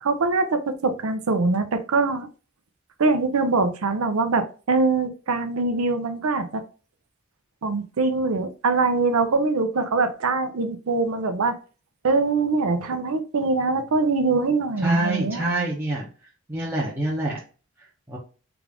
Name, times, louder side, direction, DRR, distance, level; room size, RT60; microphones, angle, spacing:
voice 1, 0.0-2.3 3.0-6.6 7.6-11.6 12.0-15.5, right 3 dB, 90° right, 9 dB, 0.6 m, -23 dB
voice 2, 14.8-16.0 16.5-17.4 18.1-18.2, right 1 dB, 10° right, -5 dB, 0.6 m, -26 dB
3.5 x 2.5 x 3.4 m, 0.36 s
head